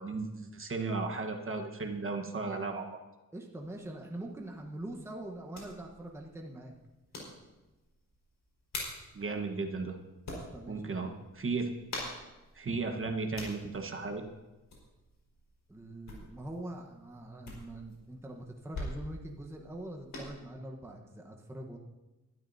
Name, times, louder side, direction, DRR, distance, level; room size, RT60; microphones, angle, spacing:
voice 1, 0.0-3.0 9.1-10.0 10.7-11.7 12.5-14.2, right 3 dB, 40° right, 3 dB, 1.2 m, -35 dB
voice 2, 3.3-6.7 10.3-11.0 15.7-21.8, right 1 dB, 10° right, 1 dB, 1.1 m, -43 dB
sound 1, 3.5-20.3, left 2 dB, 85° left, 4.6 m, -47 dB
21.0 x 12.5 x 2.7 m, 1.1 s
wide cardioid pair, 145°, 32 cm